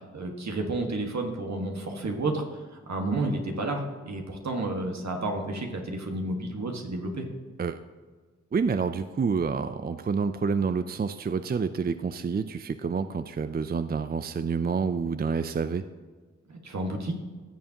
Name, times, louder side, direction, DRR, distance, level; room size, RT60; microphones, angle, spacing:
voice 1, 0.1-2.4 2.9-7.2 16.5-17.1, right 2 dB, 70° right, 2 dB, 1.6 m, -31 dB
voice 2, 8.5-15.8, right 5 dB, 35° right, 11 dB, 0.4 m, -28 dB
15.5 x 7.1 x 2.9 m, 1.4 s
cardioid pair, 55°, 29 cm